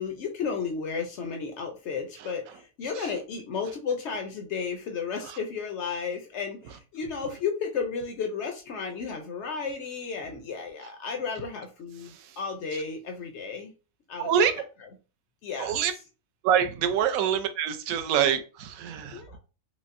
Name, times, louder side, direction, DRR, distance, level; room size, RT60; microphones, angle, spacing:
voice 1, 0.0-13.7 14.1-14.3 15.4-15.8 19.1-19.4, left 5 dB, 70° left, 4 dB, 0.6 m, -33 dB
voice 2, 12.1-12.4 14.2-14.5 15.6-15.9 16.4-19.2, right 8 dB, 70° right, 9 dB, 0.9 m, -26 dB
5.1 x 2.0 x 2.5 m, 0.34 s
omnidirectional pair, 1.7 m